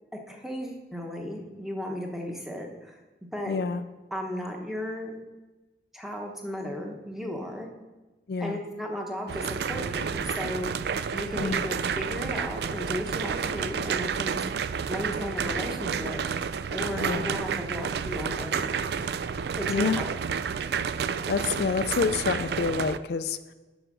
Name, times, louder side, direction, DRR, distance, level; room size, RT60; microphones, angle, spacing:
voice 1, 0.3-3.6 4.1-5.1 5.9-7.7 8.4-10.7 11.1-14.4 14.9-16.2 16.7-19.0 19.6-20.0, left 1 dB, ahead, 1 dB, 1.0 m, -35 dB
voice 2, 3.5-3.8 8.3-8.6 11.4-11.6 16.9-17.4 19.7-20.0 20.9-23.5, left 5 dB, 65° left, 11 dB, 0.4 m, -28 dB
sound 1, 9.3-23.0, right 6 dB, 65° right, 0.3 m, -30 dB
8.0 x 6.3 x 6.1 m, 1.2 s
head